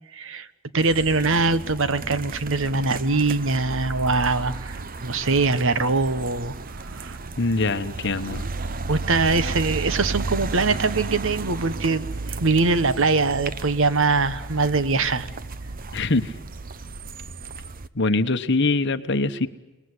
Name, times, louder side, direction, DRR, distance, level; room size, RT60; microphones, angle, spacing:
voice 1, 0.1-0.5 0.7-6.5 6.9-7.2 8.9-15.3, right 3 dB, 65° right, 14 dB, 1.1 m, -22 dB
sound 1, 0.8-17.9, right 3 dB, 40° right, 0.9 m, -33 dB
voice 2, 7.4-8.4 15.9-16.3 17.9-19.5, left 3 dB, 55° left, 10 dB, 1.2 m, -23 dB
29.5 x 20.0 x 9.8 m, 1.1 s
head